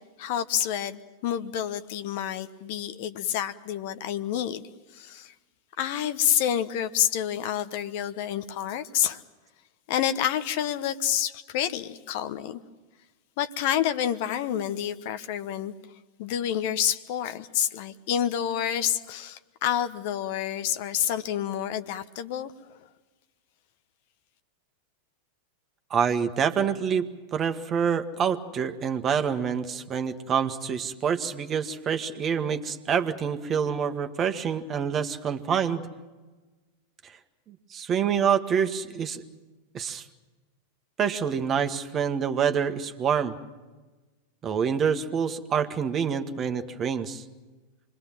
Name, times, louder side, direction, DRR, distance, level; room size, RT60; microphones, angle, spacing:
voice 1, 0.2-4.6 4.9-5.3 5.8-9.2 9.9-12.6 13.4-15.7 16.2-22.5, left 10 dB, 50° left, 11 dB, 1.1 m, -28 dB
voice 2, 25.9-35.9 37.0-37.1 37.5-39.2 39.7-40.0 41.0-43.3 44.4-47.2, right 7 dB, 25° right, 8 dB, 1.6 m, -27 dB
27.5 x 22.0 x 7.5 m, 1.2 s
figure-of-eight pair, 90°, 0 cm